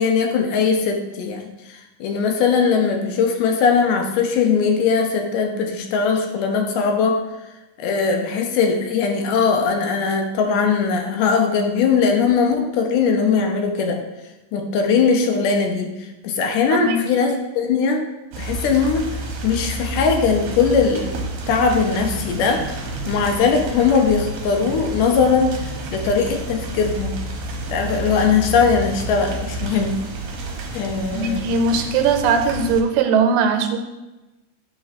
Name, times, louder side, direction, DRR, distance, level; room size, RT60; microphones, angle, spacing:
voice 1, 0.0-7.2 7.8-14.0 14.5-18.0 18.4-21.1 21.5-22.7 23.1-27.2 27.7-30.0 30.7-31.4, left 5 dB, 80° left, 4 dB, 2.1 m, -20 dB
voice 2, 16.7-17.0 31.1-33.8, right 5 dB, 85° right, 6 dB, 2.3 m, -19 dB
sound 1, 18.3-32.8, right 2 dB, 65° right, 1.7 m, -30 dB
8.5 x 3.3 x 4.1 m, 1.0 s
omnidirectional pair, 3.9 m